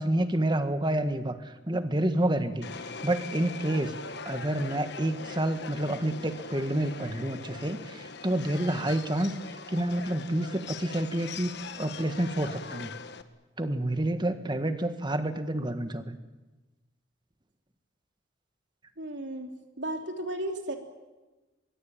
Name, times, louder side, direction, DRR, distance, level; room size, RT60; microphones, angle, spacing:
voice 1, 0.0-2.7 3.0-3.9 4.3-9.4 9.7-12.9 13.6-16.2, right 1 dB, 25° right, 9 dB, 1.7 m, -29 dB
Subway metro underground, 2.6-13.2, left 5 dB, 60° left, 1.4 m, -41 dB
voice 2, 19.0-19.5 19.8-20.8, right 1 dB, 65° right, 4 dB, 3.4 m, -34 dB
23.5 x 22.0 x 9.1 m, 1.2 s
head